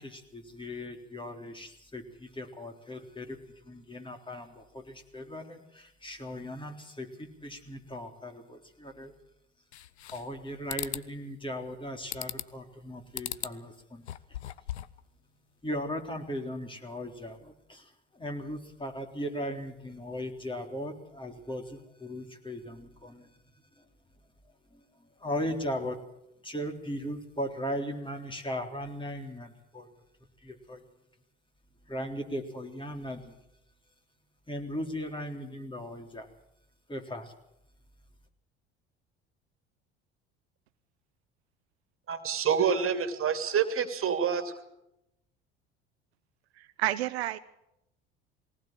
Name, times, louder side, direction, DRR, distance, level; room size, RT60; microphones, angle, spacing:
voice 1, 0.0-3.4 3.6-9.1 10.1-14.0 14.3-14.4 15.6-23.3 23.8-23.9 24.7-26.0 26.4-29.9 30.4-30.8 31.9-33.3 34.5-36.3 36.9-37.3, equal, 15° left, 4 dB, 3.8 m, -38 dB
sound 1, 9.7-10.4 10.7-11.1 12.1-12.6 13.1-13.6 14.0-15.0, left 12 dB, 90° left, 0.7 m, -37 dB
voice 2, 42.1-44.5, right 7 dB, 40° right, 9 dB, 2.8 m, -27 dB
voice 3, 46.5-47.4, right 15 dB, 80° right, 12 dB, 0.9 m, -30 dB
20.0 x 18.5 x 7.7 m, 0.83 s
hypercardioid pair, 70°, 32 cm